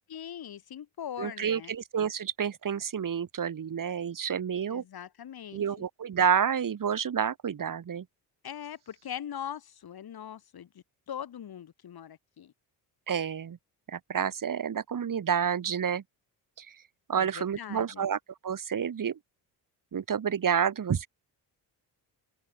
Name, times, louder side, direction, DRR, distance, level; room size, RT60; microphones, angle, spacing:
voice 1, 0.1-1.7 4.6-5.8 8.4-12.5 17.2-18.1, left 9 dB, 60° left, 7.3 m, -41 dB
voice 2, 1.2-4.8 5.5-8.0 13.1-13.6 13.9-16.0 16.6-16.7 17.1-18.2 18.4-19.2 19.9-21.1, right 7 dB, 50° right, 4.5 m, -29 dB
open air
cardioid pair, 75°, 41 cm